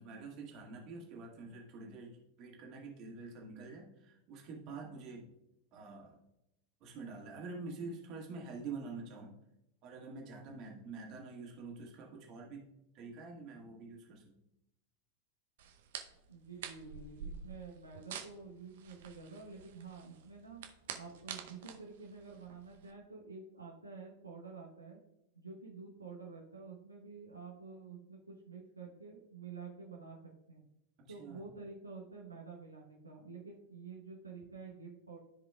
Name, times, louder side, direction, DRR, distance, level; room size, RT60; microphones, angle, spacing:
voice 1, 0.0-5.3 5.7-6.2 6.8-9.4 9.8-12.7 12.9-14.4 31.1-31.4, right 4 dB, 40° right, -1 dB, 1.8 m, -47 dB
sound 1, 15.6-22.9, right 7 dB, 55° right, 0.7 m, -48 dB
voice 2, 16.3-20.6 20.9-25.0 25.4-30.2 30.5-30.6 31.1-35.2, right 4 dB, 80° right, -2 dB, 1.0 m, -49 dB
13.5 x 5.0 x 2.3 m, 0.87 s
figure-of-eight pair, 90°, 0 cm